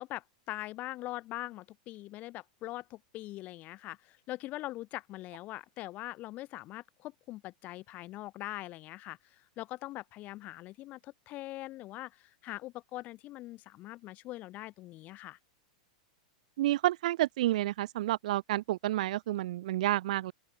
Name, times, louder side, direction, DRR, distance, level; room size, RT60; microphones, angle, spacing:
voice 1, 0.0-9.2 9.6-15.4, left 17 dB, 40° left, 5.8 m, -42 dB
voice 2, 16.6-20.3, right 15 dB, 70° right, 0.8 m, -30 dB
open air
hypercardioid pair, 125°, 4 cm